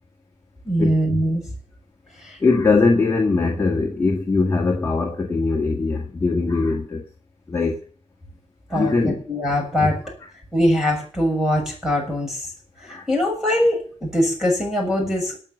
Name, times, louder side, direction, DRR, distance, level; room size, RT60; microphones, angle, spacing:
voice 1, 0.6-1.4 2.2-2.4 8.7-10.0 10.5-12.5 12.8-15.4, equal, 5° right, 6.7 m, -22 dB
voice 2, 2.4-7.0 7.5-7.8 8.7-9.2 9.8-9.9 12.9-13.0, left 3 dB, 20° left, 1.7 m, -21 dB
18.0 x 6.4 x 7.8 m
wide cardioid pair, 180°, 12 cm